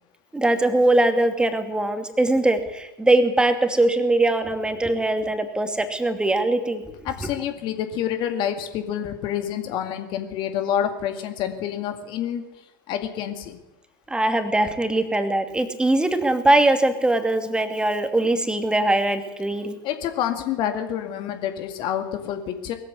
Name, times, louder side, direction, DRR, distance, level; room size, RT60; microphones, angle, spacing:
voice 1, 0.3-6.8 14.1-19.8, right 2 dB, 5° right, 8 dB, 2.6 m, -21 dB
voice 2, 7.0-12.4 12.9-13.6 19.8-22.7, left 9 dB, 40° left, 7 dB, 2.2 m, -28 dB
21.0 x 14.5 x 9.6 m, 0.97 s
figure-of-eight pair, 85°, 12 cm